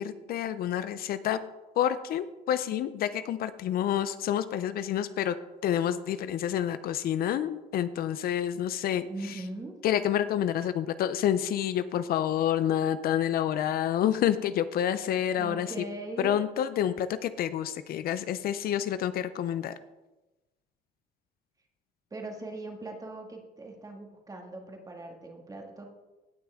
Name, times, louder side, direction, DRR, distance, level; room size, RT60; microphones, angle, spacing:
voice 1, 0.0-1.4 1.8-5.4 5.6-9.1 9.8-15.7 16.2-19.7, left 10 dB, 60° left, 13 dB, 0.5 m, -28 dB
voice 2, 9.1-9.7 15.4-16.4 22.1-25.8, right 2 dB, 20° right, 2 dB, 2.0 m, -40 dB
17.5 x 6.1 x 3.6 m, 1.1 s
cardioid pair, 110°, 17 cm